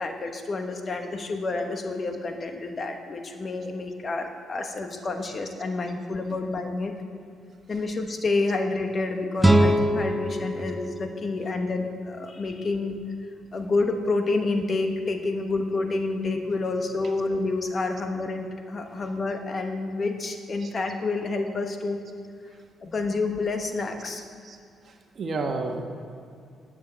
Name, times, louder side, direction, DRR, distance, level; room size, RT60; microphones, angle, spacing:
voice 1, 0.0-6.9 7.7-13.0 13.5-22.0 22.8-24.2, left 3 dB, 40° left, 5 dB, 1.2 m, -29 dB
sound 1, 9.4-12.4, right 1 dB, 5° right, 0.8 m, -24 dB
voice 2, 24.8-25.8, right 3 dB, 50° right, 4 dB, 1.5 m, -32 dB
10.0 x 8.6 x 7.4 m, 2.4 s
cardioid pair, 90°, 0 cm